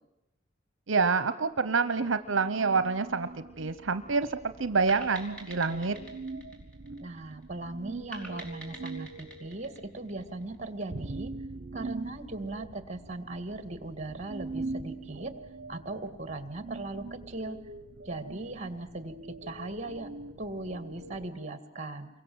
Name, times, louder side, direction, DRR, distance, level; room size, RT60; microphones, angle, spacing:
voice 1, 0.9-6.0, right 4 dB, 75° right, 11 dB, 0.9 m, -27 dB
sound 1, 2.1-21.3, right 3 dB, 55° right, 1.2 m, -43 dB
sound 2, 4.9-7.4 8.1-10.7, right 1 dB, 5° left, 4.1 m, -47 dB
voice 2, 7.0-11.3 11.7-15.3 15.7-17.6 18.1-20.1 20.4-22.1, right 2 dB, 35° right, 10 dB, 2.1 m, -38 dB
29.0 x 23.5 x 7.9 m, 0.88 s
head